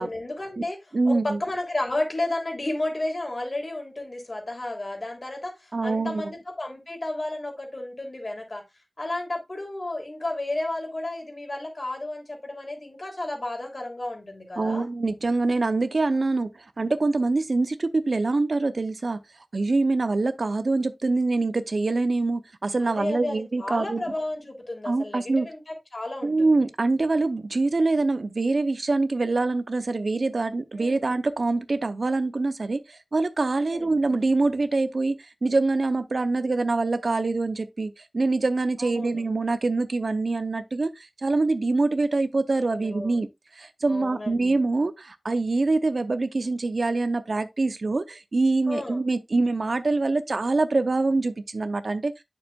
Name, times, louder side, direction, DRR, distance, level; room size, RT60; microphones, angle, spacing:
voice 1, 0.0-0.8 1.1-5.5 5.8-8.6 9.0-14.9 22.8-26.7 30.8-31.0 33.6-33.9 38.8-39.2 42.7-43.2 43.9-44.5 48.7-49.0, left 2 dB, 50° left, 3.1 m, -32 dB
voice 2, 0.9-1.4 5.7-6.3 14.6-16.5 16.8-19.2 19.5-24.0 24.8-25.5 26.2-43.3 43.6-52.2, right 3 dB, 70° right, 0.7 m, -25 dB
8.7 x 6.6 x 2.4 m
wide cardioid pair, 65°, 0 cm